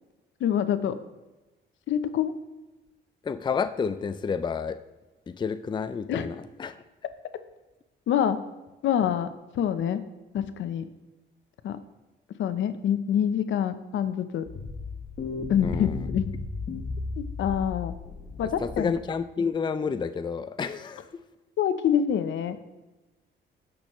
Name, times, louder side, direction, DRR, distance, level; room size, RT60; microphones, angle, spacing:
voice 1, 0.4-1.0 1.9-2.3 6.1-6.3 8.1-8.4 8.8-9.3 9.5-10.0 10.3-10.9 11.6-11.8 12.4-14.4 15.5-16.3 17.4-17.9 18.4-18.9 21.6-22.6, left 9 dB, 70° left, 11 dB, 0.8 m, -26 dB
voice 2, 3.2-4.8 5.3-6.8 15.6-16.1 18.6-21.2, left 6 dB, 25° left, 11 dB, 0.4 m, -30 dB
sound 1, 14.5-19.1, left 3 dB, 45° left, 1.1 m, -35 dB
15.5 x 6.2 x 3.1 m, 1.1 s
cardioid pair, 90°, 20 cm